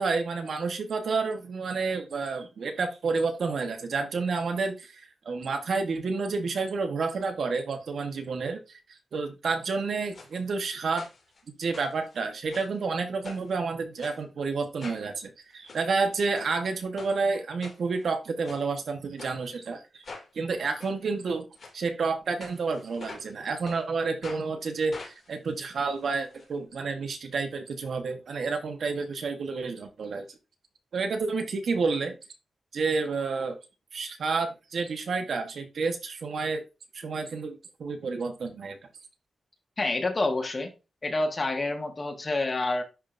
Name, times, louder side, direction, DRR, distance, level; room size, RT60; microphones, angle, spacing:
voice 1, 0.0-11.1 11.6-20.0 20.3-21.4 21.7-30.3 30.9-32.1 32.7-33.6 33.9-36.6 36.9-38.8, right 4 dB, 70° right, 1.2 m, -30 dB
sound 1, 10.1-10.3 11.0-11.4 11.7-12.8 13.2-13.6 14.0-14.2 14.8-15.1 15.5-15.8 16.3-16.5 17.0-17.1 17.6-18.1 18.4-18.6 19.2-19.4 20.0-20.3 20.8-20.9 21.6-21.8 22.4-23.3 23.7-23.8 24.2-24.4 24.9-26.5 26.7-26.8 27.1-27.2, left 3 dB, 55° left, 2.5 m, -45 dB
voice 2, 39.8-40.7 41.0-42.8, left 2 dB, 35° left, 1.5 m, -28 dB
10.5 x 3.7 x 2.6 m
wide cardioid pair, 120°, 0 cm